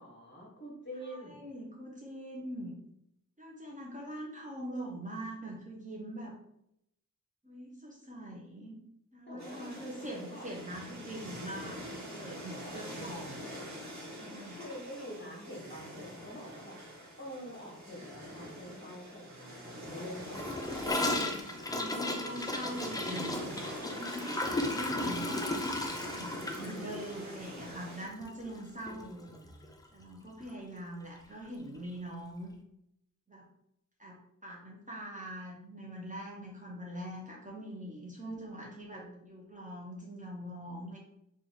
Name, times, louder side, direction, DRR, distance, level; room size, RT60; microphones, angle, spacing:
voice 1, 0.0-1.4 9.3-10.5 12.9-13.3 14.5-20.4 20.8-22.8 28.9-29.7 38.2-39.3, equal, 35° left, -3 dB, 1.4 m, -47 dB
voice 2, 1.0-2.7 3.4-6.3 7.4-8.8 9.1-13.4 14.2-14.6 20.5-21.3 21.6-23.5 23.8-25.4 25.7-29.4 29.9-32.5 33.3-33.4 34.0-41.0, right 1 dB, 25° right, -3 dB, 0.7 m, -43 dB
sound 1, 9.4-28.1, equal, 50° right, 1.2 m, -45 dB
Gurgling / Toilet flush, 20.3-28.6 28.9-29.0 29.3-29.7 30.0-30.1 30.4-30.5 31.5-31.6, left 2 dB, 10° left, 0.4 m, -35 dB
3.0 x 2.4 x 3.9 m, 0.77 s
wide cardioid pair, 80°, 34 cm